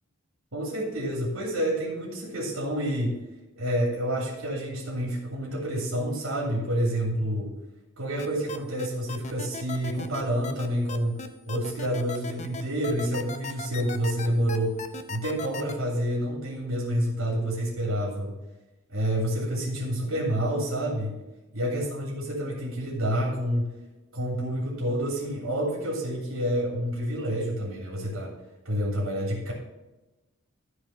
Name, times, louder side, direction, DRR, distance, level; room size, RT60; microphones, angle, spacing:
voice 1, 0.5-3.2 3.6-7.5 8.0-18.3 18.9-21.1 21.5-23.7 24.1-28.3 28.6-29.5, equal, 85° right, -3 dB, 2.9 m, -28 dB
sound 1, 8.2-15.7, left 5 dB, 35° left, 0.7 m, -37 dB
13.0 x 4.9 x 5.6 m, 1.1 s
head